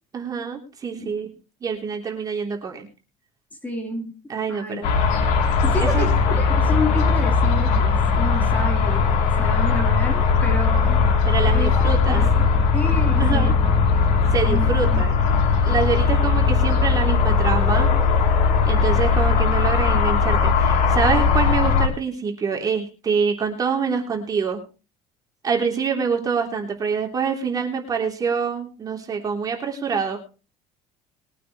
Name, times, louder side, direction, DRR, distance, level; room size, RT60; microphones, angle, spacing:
voice 1, 0.1-1.3 1.6-2.9 4.3-4.9 5.8-6.1 11.2-12.2 13.2-13.5 14.3-15.2 15.6-17.9 18.6-24.6 25.4-30.2, right 6 dB, 30° right, 2 dB, 3.3 m, -25 dB
voice 2, 3.6-4.1 4.5-4.8 5.6-9.1 9.4-11.0 11.5-12.3 12.7-13.6 14.5-15.0, left 1 dB, 10° left, 2 dB, 3.6 m, -30 dB
sound 1, 4.8-21.9, left 5 dB, 75° left, 3.3 m, -19 dB
22.0 x 9.1 x 3.2 m, 0.32 s
cardioid pair, 155°, 13 cm